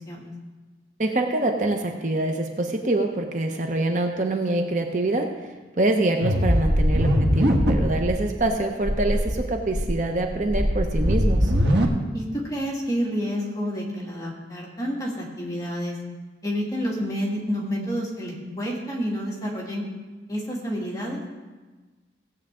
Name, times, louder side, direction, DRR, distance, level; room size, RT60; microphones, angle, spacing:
voice 1, 1.0-11.5, right 2 dB, 45° right, 3 dB, 0.8 m, -25 dB
sound 1, 6.2-8.1 8.4-8.5 8.8-9.3 9.7-11.8, equal, 75° right, 1.4 m, -21 dB
voice 2, 12.1-16.0 16.4-19.8 20.3-21.2, equal, 20° left, -4 dB, 2.3 m, -29 dB
17.0 x 8.0 x 3.7 m, 1.3 s
head